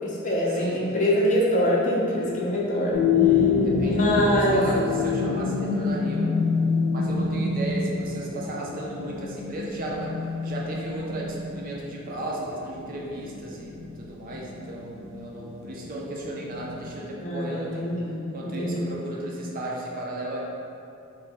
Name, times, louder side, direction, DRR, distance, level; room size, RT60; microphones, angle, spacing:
voice 1, 0.0-3.0 3.8-4.6 17.2-18.3 18.6-18.8, left 1 dB, 35° left, -5 dB, 0.5 m, -24 dB
voice 2, 0.5-0.9 3.6-6.3 6.9-17.8 18.3-20.4, right 1 dB, 40° right, -3 dB, 0.4 m, -35 dB
sound 1, 2.9-16.8, left 5 dB, 75° left, 0.7 m, -27 dB
3.2 x 2.6 x 3.3 m, 2.6 s
head